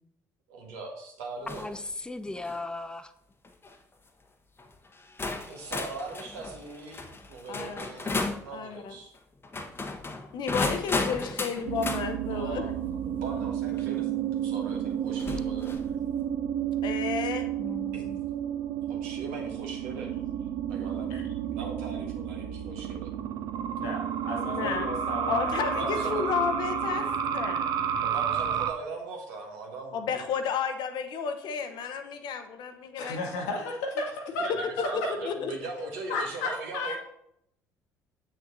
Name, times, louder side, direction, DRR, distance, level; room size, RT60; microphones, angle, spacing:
voice 1, 0.5-1.8 5.5-9.1 12.3-15.8 17.9-18.1 18.9-20.1 20.7-21.2 21.5-23.1 25.7-26.3 28.0-30.2 34.4-37.0, right 3 dB, 75° right, 1 dB, 1.4 m, -40 dB
sound 1, 1.5-1.8 2.3-2.6 3.4-3.7 4.6-4.7 5.2-8.5 9.4-12.1 13.8-13.9 15.2-15.9, left 3 dB, 25° left, 0.9 m, -34 dB
voice 2, 1.5-3.1 17.6-18.2, left 2 dB, 10° left, 10 dB, 0.5 m, -37 dB
voice 3, 7.5-7.9 8.5-8.9 10.3-12.7 16.8-17.5 24.4-24.9 25.3-27.6 29.9-33.3 34.8-35.5, left 6 dB, 60° left, 7 dB, 0.9 m, -32 dB
sound 2, 11.7-28.7, right 9 dB, 60° right, 0.6 m, -31 dB
voice 4, 23.8-26.0 33.0-34.5 34.8-34.9 35.8-37.0, left 2 dB, 75° left, 1 dB, 1.4 m, -34 dB
7.9 x 6.0 x 2.7 m, 0.76 s
hypercardioid pair, 55°, 9 cm